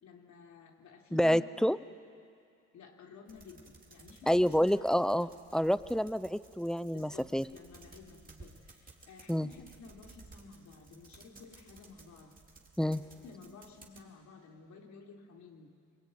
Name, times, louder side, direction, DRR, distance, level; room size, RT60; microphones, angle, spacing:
voice 1, 0.0-1.4 2.7-4.8 6.9-12.3 12.8-15.7, left 4 dB, 70° left, 1 dB, 3.6 m, -53 dB
voice 2, 1.1-1.8 4.3-7.4 9.3-9.5 12.8-13.0, equal, ahead, 16 dB, 0.6 m, -28 dB
sound 1, 3.3-14.0, right 3 dB, 30° right, 3.8 m, -57 dB
25.5 x 22.0 x 9.5 m, 2.4 s
cardioid pair, 90°, 30 cm